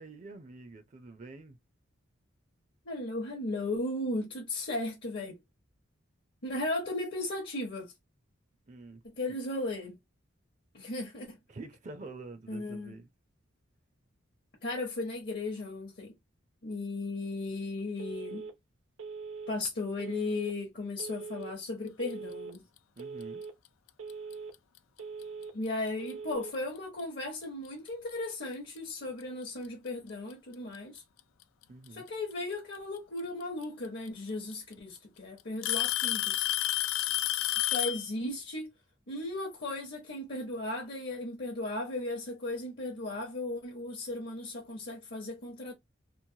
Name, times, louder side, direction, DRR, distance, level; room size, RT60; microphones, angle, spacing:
voice 1, 0.0-1.6 8.7-9.0 11.5-13.1 23.0-23.4 31.7-32.0, right 3 dB, 35° right, 0.5 m, -46 dB
voice 2, 2.8-5.4 6.4-7.9 9.2-10.0 10.7-11.4 12.5-13.0 14.6-16.1 16.6-18.5 19.5-22.6 25.5-31.0 31.9-36.4 37.6-38.7 39.1-45.7, left 2 dB, 55° left, 0.8 m, -36 dB
Telephone, 18.0-18.5 19.0-19.5 20.0-20.5 21.0-21.5 22.0-22.5 23.0-23.5 24.0-24.5 25.0-25.5 26.0-26.5, right 5 dB, 70° right, 0.7 m, -41 dB
Alarm / Tick-tock, 24.1-24.3 25.2-25.3 26.1-26.2 27.9-28.0 29.2-29.3 30.5-31.0 32.7-32.8 34.1-34.2 34.5-35.0 35.6-38.1, left 14 dB, 80° left, 0.3 m, -30 dB
3.0 x 2.0 x 2.7 m
head